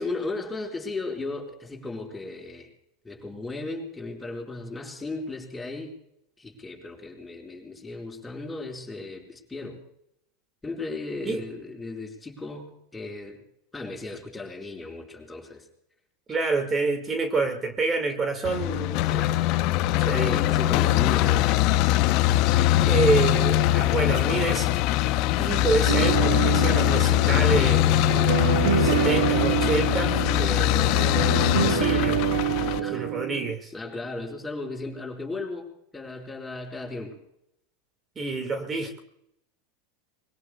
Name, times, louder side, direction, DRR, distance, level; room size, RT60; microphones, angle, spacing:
voice 1, 0.0-2.7 3.0-5.9 6.4-9.8 10.6-13.4 13.7-15.7 19.1-19.4 20.1-21.6 32.8-33.1 33.7-37.2, left 3 dB, 10° left, -1 dB, 5.2 m, -36 dB
voice 2, 16.3-19.0 20.1-20.3 22.9-24.8 25.4-28.0 28.8-31.1 31.4-32.2 32.9-33.7 38.2-39.0, right 3 dB, 25° right, 6 dB, 2.2 m, -28 dB
sound 1, 18.4-32.8, left 14 dB, 55° left, 0.8 m, -22 dB
sound 2, 25.9-33.5, right 13 dB, 65° right, 0.8 m, -27 dB
25.0 x 22.0 x 2.4 m, 0.77 s
hypercardioid pair, 85°, 0 cm